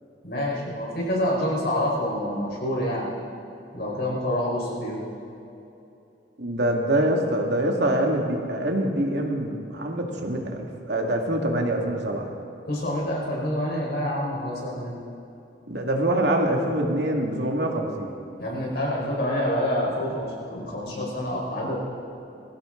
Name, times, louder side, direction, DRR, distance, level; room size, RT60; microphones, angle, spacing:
voice 1, 0.2-3.1 3.7-5.0 12.7-15.0 18.4-21.8, left 1 dB, 65° left, -3 dB, 4.7 m, -27 dB
voice 2, 6.4-12.3 15.7-18.1, right 1 dB, 85° right, 1 dB, 2.2 m, -25 dB
22.5 x 16.0 x 3.9 m, 2.8 s
head